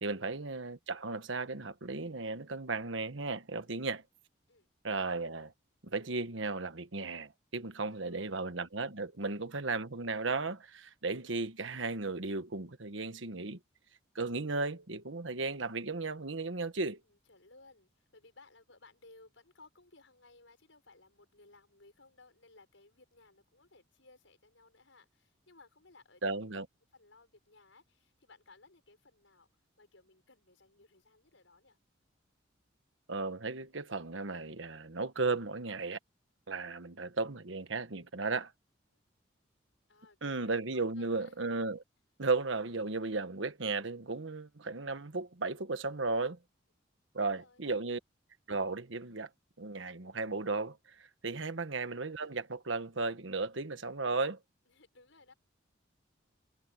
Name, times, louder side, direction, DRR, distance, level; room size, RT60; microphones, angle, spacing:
voice 1, 0.0-4.0 4.8-5.5 5.8-13.6 14.1-17.0 26.2-26.7 33.1-36.0 36.5-38.5 40.2-41.8 42.2-46.4 47.1-48.0 48.5-49.3 49.6-54.4, right 3 dB, 80° right, 1.3 m, -35 dB
voice 2, 3.6-4.0 4.5-4.7 7.6-8.3 9.2-9.3 16.7-26.5 26.9-31.8 38.9-39.0 39.4-39.5 39.9-40.4 40.7-41.5 47.2-47.6 54.7-55.3, left 3 dB, 80° left, 5.8 m, -61 dB
head